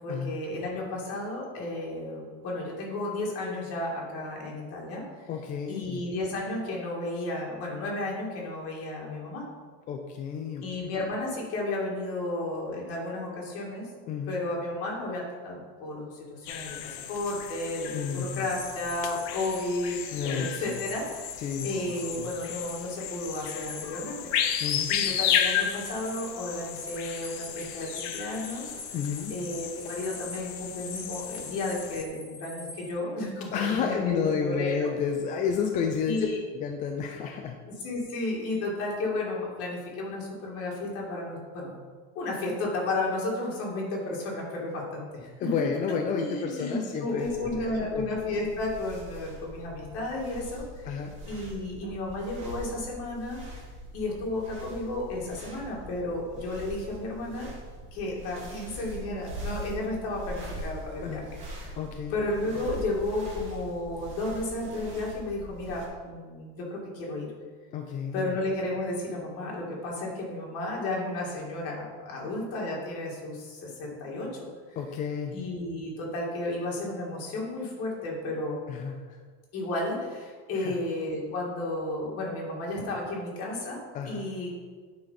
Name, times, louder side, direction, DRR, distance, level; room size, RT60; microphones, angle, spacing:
voice 1, 0.0-5.3 5.7-9.4 10.6-13.9 14.3-24.2 24.5-28.7 29.3-34.9 36.0-36.4 37.8-41.7 42.1-45.5 46.1-53.4 53.9-57.5 57.9-61.2 62.1-67.3 68.1-74.4 74.7-74.8 75.3-78.6 79.5-83.8 84.1-84.6, left 2 dB, 45° left, -3 dB, 2.4 m, -33 dB
voice 2, 5.3-6.0 9.9-10.9 14.1-14.4 17.9-18.5 20.1-20.8 21.4-21.8 22.2-22.3 24.6-24.9 28.9-29.3 33.5-36.3 36.5-37.6 45.4-48.1 50.9-51.1 61.0-61.3 61.8-62.2 67.7-68.3 74.8-75.4 78.7-79.2 80.5-80.7 83.9-84.3, left 6 dB, 25° left, 3 dB, 0.3 m, -31 dB
sound 1, 16.5-32.0, left 9 dB, 85° left, 0.9 m, -33 dB
sound 2, 18.1-19.6 19.9-22.8 23.1-32.9, left 1 dB, 10° left, 1.1 m, -45 dB
sound 3, 47.2-65.9, equal, 35° right, 2.1 m, -42 dB
9.4 x 4.3 x 5.7 m, 1.5 s
cardioid pair, 175°, 34 cm